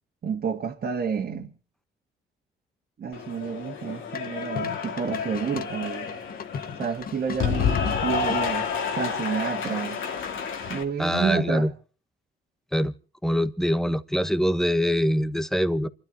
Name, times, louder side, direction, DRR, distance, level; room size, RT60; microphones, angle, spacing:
voice 1, 0.2-1.5 3.0-6.1 6.8-8.7 9.0-10.0 10.7-11.7, right 6 dB, 50° right, 1.9 m, -30 dB
Cheering / Applause, 3.1-10.8, left 6 dB, 80° left, 2.4 m, -29 dB
sound 1, 4.2-8.5 9.7-10.1, left 6 dB, 50° left, 1.1 m, -38 dB
voice 2, 11.0-11.7 12.7-12.9 13.2-15.9, equal, ahead, 1.1 m, -24 dB
28.5 x 12.0 x 4.0 m
cardioid pair, 90°, 20 cm